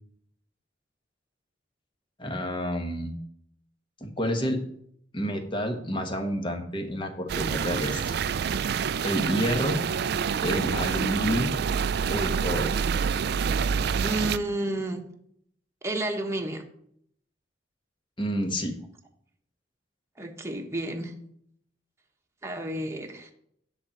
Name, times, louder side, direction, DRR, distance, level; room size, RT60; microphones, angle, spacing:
voice 1, 2.2-3.1 4.0-4.6 5.1-8.1 9.0-9.8 10.4-11.5 12.1-12.7 18.2-18.7, equal, 25° left, 4 dB, 1.4 m, -29 dB
sound 1, 7.3-14.4, right 6 dB, 60° right, 0.4 m, -27 dB
voice 2, 14.0-15.0 15.8-16.6 20.2-21.1 22.4-23.3, right 1 dB, 15° right, 2 dB, 1.2 m, -31 dB
9.8 x 4.3 x 7.3 m, 0.68 s
head